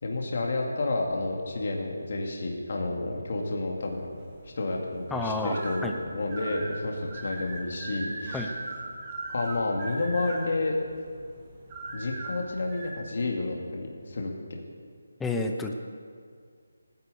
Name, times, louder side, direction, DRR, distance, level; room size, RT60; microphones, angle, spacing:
voice 1, 0.0-4.1 4.5-8.5 9.3-10.8 11.9-14.6, left 2 dB, 50° left, 0 dB, 2.2 m, -30 dB
sound 1, 3.8-12.9, right 2 dB, 15° right, 2.0 m, -40 dB
voice 2, 5.1-5.6 5.8-6.0 8.3-8.5 15.2-15.7, left 3 dB, 5° left, 3 dB, 0.6 m, -29 dB
17.5 x 10.5 x 7.0 m, 2.1 s
figure-of-eight pair, 170°, 0 cm